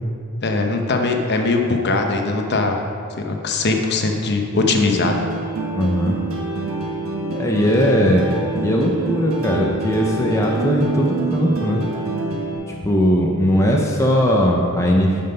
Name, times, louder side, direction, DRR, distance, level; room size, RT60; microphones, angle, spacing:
voice 1, 0.4-2.8 3.2-5.2, left 3 dB, 50° left, 3 dB, 0.9 m, -20 dB
sound 1, 4.6-12.6, right 3 dB, 65° right, 1.4 m, -26 dB
voice 2, 5.8-6.2 7.3-8.3 8.5-11.8 12.7-15.2, equal, 15° left, -1 dB, 0.6 m, -18 dB
9.3 x 5.5 x 5.5 m, 2.5 s
head